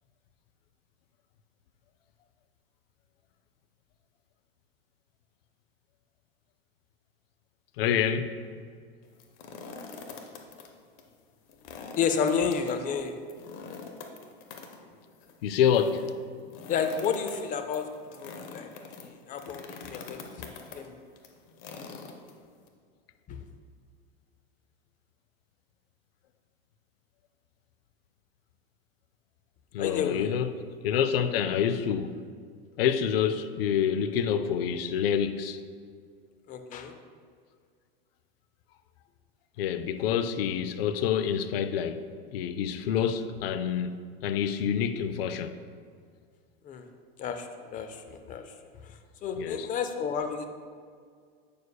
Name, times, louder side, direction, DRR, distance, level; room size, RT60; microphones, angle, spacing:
voice 1, 7.8-8.3 15.4-16.0 29.7-30.6 30.8-32.2 32.8-35.6 39.6-42.0 42.3-45.5 49.4-49.7, left 8 dB, 75° left, 11 dB, 0.5 m, -27 dB
sound 1, 9.0-10.7 11.0-11.1 11.5-22.7, left 5 dB, 50° left, 0.9 m, -44 dB
voice 2, 12.0-13.2 16.7-18.7 19.3-20.9 23.3-23.4 29.8-30.3 36.5-36.9 46.7-46.9 47.2-48.4 49.2-50.5, left 6 dB, 25° left, 7 dB, 0.5 m, -31 dB
8.2 x 6.6 x 2.3 m, 2.1 s
supercardioid pair, 120°, 30 cm